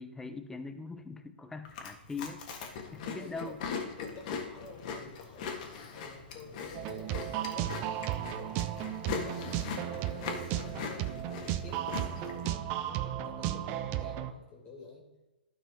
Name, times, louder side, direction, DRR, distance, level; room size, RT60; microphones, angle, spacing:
voice 1, 0.0-3.6, left 4 dB, 10° left, 8 dB, 0.6 m, -42 dB
Chewing mastication, 1.6-12.5, left 5 dB, 50° left, 1.6 m, -40 dB
voice 2, 3.1-3.6 3.9-5.6 5.9-11.0 11.4-15.1, left 3 dB, 30° left, -2 dB, 2.4 m, -51 dB
sound 1, 6.7-14.3, right 12 dB, 35° right, 0.5 m, -35 dB
12.5 x 5.6 x 3.7 m, 1.1 s
hypercardioid pair, 135°, 6 cm